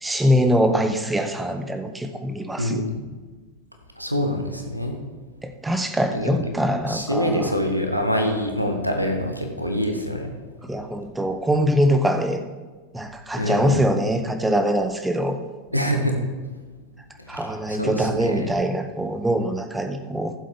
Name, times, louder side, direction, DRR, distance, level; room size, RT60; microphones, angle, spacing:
voice 1, 0.0-2.8 5.4-7.5 10.6-12.4 12.9-15.4 17.3-20.3, equal, 5° right, 7 dB, 0.9 m, -23 dB
voice 2, 2.6-3.0 4.0-5.0 6.1-6.3 6.9-10.3 13.3-13.9 15.7-16.2 17.2-18.5, equal, 90° right, 4 dB, 1.1 m, -25 dB
14.5 x 7.6 x 3.6 m, 1.3 s
figure-of-eight pair, 90°, 0 cm